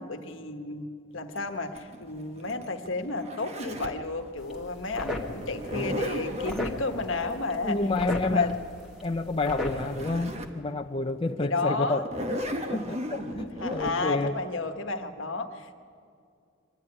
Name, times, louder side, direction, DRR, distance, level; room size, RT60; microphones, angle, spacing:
voice 1, 0.0-7.8 8.2-8.5 11.4-12.0 13.1-15.7, left 3 dB, 70° left, 6 dB, 1.4 m, -32 dB
Zipper (clothing), 1.4-4.1 5.4-6.7 9.3-9.4 9.6-10.6 11.1-11.2 11.9-13.9, left 1 dB, 30° right, 1.2 m, -34 dB
sound 1, 4.4-10.4, left 1 dB, 5° right, 1.9 m, -37 dB
voice 2, 7.2-8.6 9.0-12.1 12.7-14.4, left 2 dB, 25° left, 4 dB, 0.5 m, -29 dB
23.0 x 12.5 x 9.8 m, 2.4 s
head